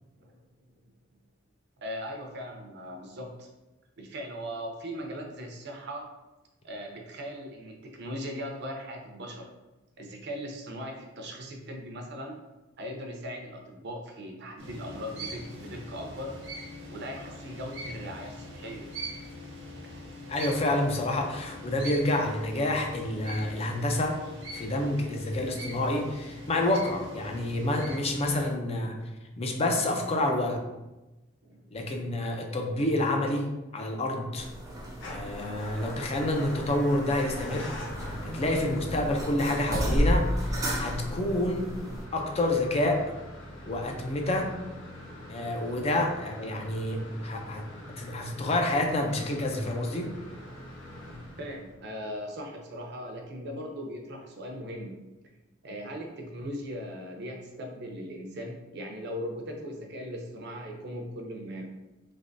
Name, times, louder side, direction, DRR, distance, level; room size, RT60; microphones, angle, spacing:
voice 1, 1.8-3.5 4.0-6.1 6.6-9.5 10.0-12.4 12.8-16.3 16.9-18.9 31.4-32.1 47.8-48.1 50.8-55.0 55.6-61.7, equal, 60° right, 2 dB, 0.6 m, -39 dB
sound 1, 14.6-28.5, equal, 80° right, 1.0 m, -42 dB
voice 2, 20.3-24.2 24.5-29.0 29.4-30.6 31.7-34.5 35.1-37.7 38.0-41.7 42.1-43.0 43.6-44.5 45.3-47.6 48.0-50.1, left 1 dB, 30° left, 2 dB, 0.5 m, -28 dB
sound 2, 34.4-42.0, equal, 15° right, 0.6 m, -33 dB
Motor vehicle (road) / Engine starting / Idling, 34.9-51.9, left 1 dB, 75° left, 0.8 m, -42 dB
3.4 x 3.0 x 2.6 m, 1.0 s
head